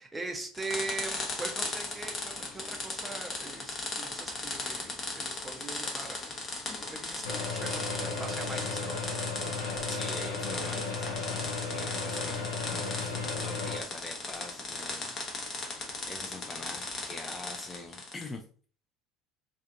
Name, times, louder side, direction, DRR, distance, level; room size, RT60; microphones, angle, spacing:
voice 1, 0.0-6.2 6.9-9.0, right 3 dB, 15° right, 3 dB, 0.6 m, -41 dB
sound 1, 0.5-18.3, left 3 dB, 35° left, 0.8 m, -37 dB
sound 2, 7.2-13.8, left 4 dB, 75° left, 0.6 m, -35 dB
voice 2, 9.9-15.1 15.7-18.4, left 2 dB, 20° left, 3 dB, 0.3 m, -44 dB
2.5 x 2.4 x 2.4 m, 0.43 s
figure-of-eight pair, 65°, 0 cm